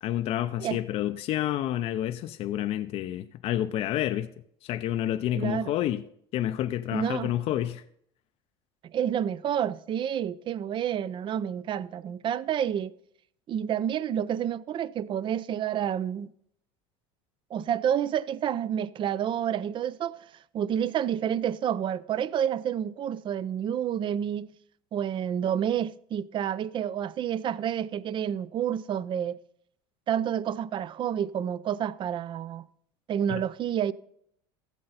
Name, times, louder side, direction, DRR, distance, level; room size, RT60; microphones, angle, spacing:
voice 1, 0.0-4.3 4.6-6.0 6.3-7.8 33.3-33.4, left 12 dB, 50° left, 0.5 m, -29 dB
voice 2, 5.4-5.7 6.9-7.3 8.9-12.9 13.5-16.3 17.5-20.2 20.5-24.5 24.9-29.4 30.1-32.6 33.1-33.9, right 9 dB, 40° right, 0.5 m, -29 dB
15.0 x 7.7 x 4.0 m
supercardioid pair, 100°, 13 cm